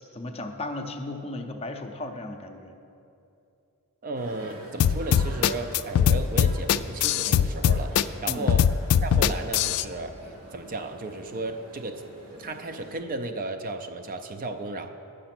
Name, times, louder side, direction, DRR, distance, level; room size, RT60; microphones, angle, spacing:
voice 1, 0.1-2.8 8.3-8.5, left 2 dB, 30° left, 5 dB, 0.6 m, -35 dB
voice 2, 4.0-8.7 9.0-10.2 10.5-12.0 12.4-14.9, right 2 dB, 40° right, 7 dB, 0.5 m, -34 dB
sound 1, 4.1-12.9, right 1 dB, 85° right, 2.0 m, -46 dB
sound 2, 4.8-9.8, left 8 dB, 85° left, 0.3 m, -21 dB
9.5 x 6.7 x 5.9 m, 2.7 s
head